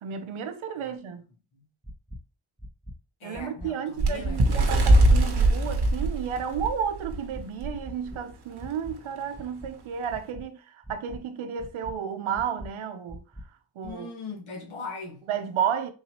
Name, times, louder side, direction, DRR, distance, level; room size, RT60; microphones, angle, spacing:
voice 1, 0.0-1.2 3.2-13.2 13.8-14.1 15.3-15.9, right 8 dB, 80° right, 0.7 m, -32 dB
sound 1, 1.8-2.2 2.6-2.9 3.3-3.7 4.1-4.4 4.8-5.2 5.6-5.9 6.3-6.7 7.1-7.4 7.8-8.2 8.6-8.9 9.3-9.7 10.1-10.4 10.8-11.2 11.6-11.9 12.3-12.7 13.1-13.4 13.8-13.9, equal, 5° right, 0.6 m, -41 dB
voice 2, 3.2-4.4 13.8-15.2, left 4 dB, 80° left, 1.4 m, -39 dB
Bird, 4.0-7.2 7.6-7.8 8.1-8.3 9.1-9.2, right 1 dB, 55° right, 1.0 m, -21 dB
4.0 x 2.8 x 2.9 m
cardioid pair, 50°, 48 cm